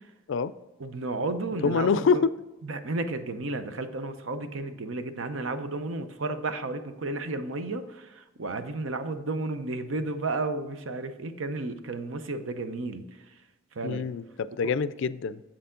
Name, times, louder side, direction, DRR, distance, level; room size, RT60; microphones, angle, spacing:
voice 1, 0.8-2.2 2.6-13.4 13.7-14.1 14.6-14.7, right 2 dB, 65° right, 9 dB, 0.7 m, -33 dB
voice 2, 1.6-2.3 13.8-15.4, left 5 dB, 65° left, 16 dB, 0.4 m, -25 dB
7.5 x 6.8 x 3.7 m, 1.1 s
head